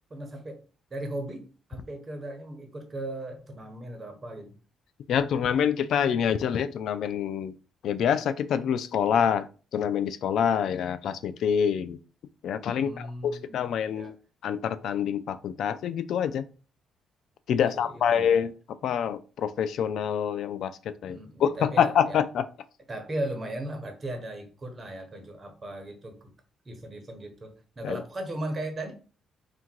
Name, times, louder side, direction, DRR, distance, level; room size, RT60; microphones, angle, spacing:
voice 1, 0.1-0.6 0.9-4.5 12.8-13.6 13.9-14.1 17.6-18.5 21.0-22.2 22.9-26.3 26.6-28.9, right 1 dB, 35° right, 5 dB, 1.1 m, -37 dB
voice 2, 5.1-7.5 7.8-9.5 9.7-12.0 12.4-14.1 14.4-16.4 17.5-18.5 18.8-22.5 27.8-28.0, left 8 dB, 70° left, 13 dB, 0.3 m, -26 dB
3.6 x 2.5 x 4.5 m, 0.36 s
cardioid pair, 90°, 0 cm